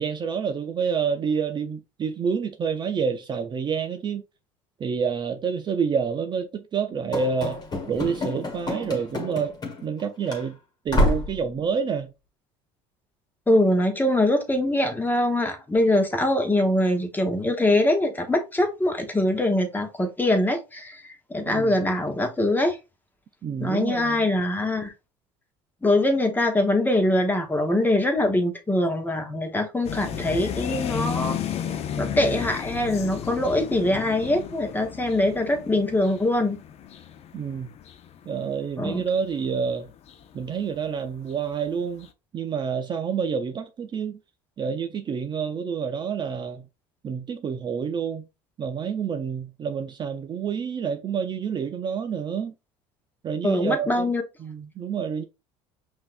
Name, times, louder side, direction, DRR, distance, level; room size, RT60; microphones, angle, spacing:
voice 1, 0.0-4.2 4.8-7.6 7.9-9.6 9.8-10.6 10.8-12.1 21.4-21.8 23.4-24.3 37.3-37.7 38.3-39.9 40.3-42.1 42.3-44.2 44.6-46.6 47.0-48.2 48.6-52.5 53.2-54.1 54.4-55.2, right 6 dB, 30° right, 0.5 m, -28 dB
Run / Slam, 7.1-10.0 10.3-10.4 10.9-11.4, left 1 dB, 30° left, 1.5 m, -27 dB
voice 2, 13.5-21.0 21.3-22.8 23.6-24.9 25.8-31.4 32.0-36.6 38.8-39.0 53.4-54.2, left 1 dB, 15° left, 1.0 m, -23 dB
sound 1, 29.8-40.8 41.3-41.7 42.0-42.1, left 9 dB, 45° left, 0.6 m, -33 dB
5.6 x 2.7 x 2.5 m
supercardioid pair, 95°, 14 cm